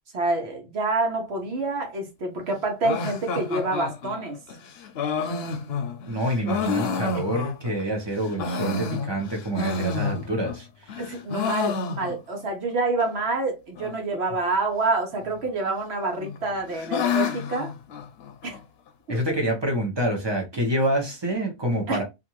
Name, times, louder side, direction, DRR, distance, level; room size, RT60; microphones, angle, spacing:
voice 1, 0.1-4.4 11.0-17.7 18.4-18.6 21.9-22.0, right 3 dB, 75° right, 1.2 m, -27 dB
sound 1, 2.8-7.8 8.2-10.6 10.9-12.4 12.7-12.8 13.0-13.1 13.8-14.2 15.2-15.8 16.2-18.6, left 5 dB, 70° left, 0.8 m, -30 dB
voice 2, 6.1-10.9 19.1-22.0, right 1 dB, 25° right, 0.9 m, -27 dB
2.6 x 2.5 x 3.0 m
omnidirectional pair, 1.1 m